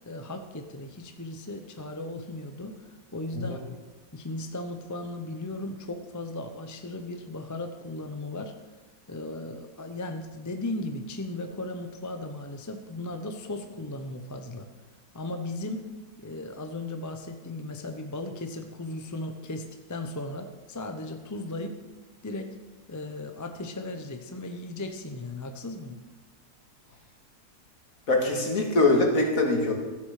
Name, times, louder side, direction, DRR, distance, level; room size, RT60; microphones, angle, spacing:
voice 1, 0.0-3.6 4.1-8.5 9.1-14.7 15.1-15.9 16.2-21.8 22.2-22.5 22.9-26.0, left 2 dB, 15° left, 6 dB, 0.7 m, -36 dB
voice 2, 28.1-29.7, left 2 dB, 60° left, 1 dB, 2.5 m, -23 dB
14.0 x 8.1 x 6.6 m, 1.2 s
omnidirectional pair, 1.7 m